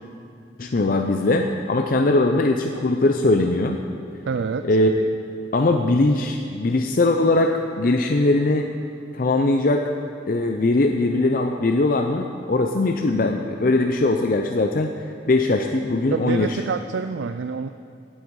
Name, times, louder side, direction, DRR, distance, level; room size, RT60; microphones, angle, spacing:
voice 1, 0.6-3.8 4.6-5.2 5.5-8.7 9.1-9.9 10.3-14.9 15.3-16.6, left 2 dB, 50° left, 4 dB, 0.5 m, -20 dB
voice 2, 4.3-4.7 16.1-17.7, right 5 dB, 80° right, 9 dB, 0.4 m, -27 dB
17.0 x 8.9 x 4.7 m, 2.5 s
head